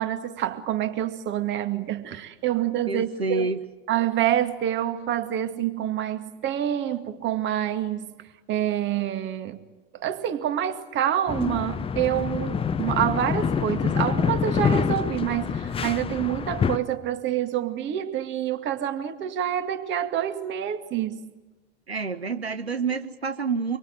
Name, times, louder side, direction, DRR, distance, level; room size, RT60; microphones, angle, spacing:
voice 1, 0.0-3.5 3.9-9.6 9.9-21.3, right 11 dB, 35° right, 2.3 m, -27 dB
voice 2, 2.9-3.6 21.9-23.8, right 4 dB, 90° right, 1.1 m, -28 dB
sound 1, 11.3-16.8, left 6 dB, 20° left, 1.0 m, -26 dB
25.0 x 24.0 x 7.8 m
figure-of-eight pair, 85°, 31 cm